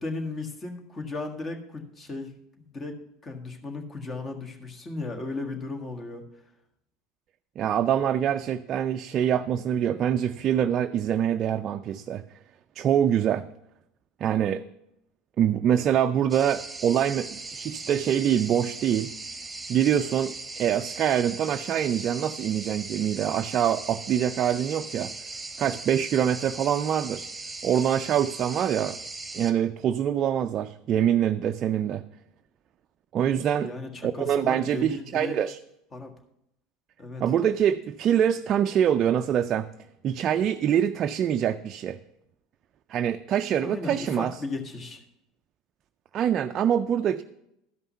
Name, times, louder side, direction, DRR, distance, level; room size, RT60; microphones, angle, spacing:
voice 1, 0.0-3.0 3.2-6.2 33.6-35.4 35.9-36.1 37.0-37.2 43.6-45.0, left 3 dB, 30° left, 4 dB, 1.6 m, -35 dB
voice 2, 7.6-12.2 12.8-13.5 14.2-14.6 15.4-19.1 19.7-25.1 25.6-27.3 27.6-29.0 29.3-32.0 33.1-33.7 34.0-35.6 37.2-39.7 40.0-42.0 42.9-44.3 46.1-47.2, right 9 dB, 45° right, 8 dB, 0.3 m, -25 dB
sound 1, 16.3-29.5, right 3 dB, 15° right, 1.2 m, -39 dB
12.5 x 5.5 x 5.5 m, 0.82 s
hypercardioid pair, 85°, 0 cm